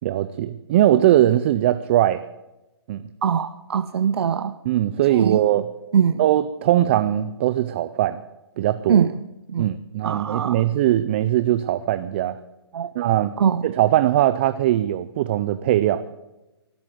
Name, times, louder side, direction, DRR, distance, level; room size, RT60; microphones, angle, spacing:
voice 1, 0.0-2.2 2.9-3.0 4.7-5.6 6.2-8.2 8.6-9.0 9.6-12.4 13.0-13.3 13.6-16.0, right 13 dB, 25° right, 13 dB, 0.4 m, -20 dB
voice 2, 3.2-4.6 5.1-5.7 5.9-6.2 8.9-9.2 9.5-9.7 10.0-10.7 12.7-12.9 13.4-13.7, right 7 dB, 65° right, 12 dB, 0.6 m, -22 dB
13.0 x 11.0 x 8.1 m, 1.0 s
hypercardioid pair, 160°, 14 cm